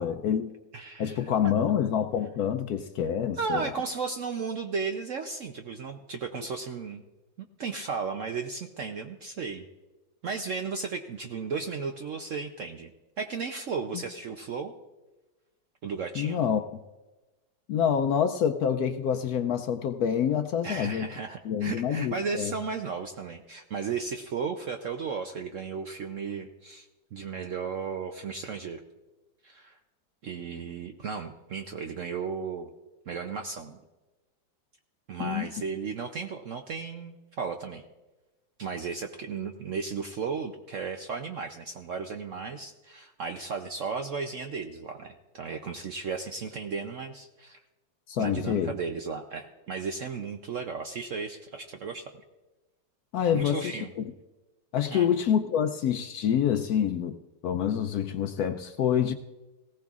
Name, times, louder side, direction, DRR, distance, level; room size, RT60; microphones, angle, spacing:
voice 1, 0.0-0.5 1.0-3.7 13.9-14.0 16.1-16.8 17.7-21.1 21.4-22.5 35.2-35.5 48.1-48.7 53.1-54.0 54.7-57.2 57.4-59.1, left 8 dB, 70° left, 0.9 m, -27 dB
voice 2, 0.7-1.3 3.3-7.0 7.4-9.7 10.2-12.9 13.2-14.7 15.8-16.4 20.6-26.9 27.1-28.8 29.4-29.8 30.2-32.7 33.1-33.8 35.1-37.8 38.6-47.6 48.2-52.1 53.3-53.9 54.9-55.1, right 5 dB, 65° right, 0.8 m, -35 dB
18.5 x 16.5 x 2.4 m
omnidirectional pair, 2.0 m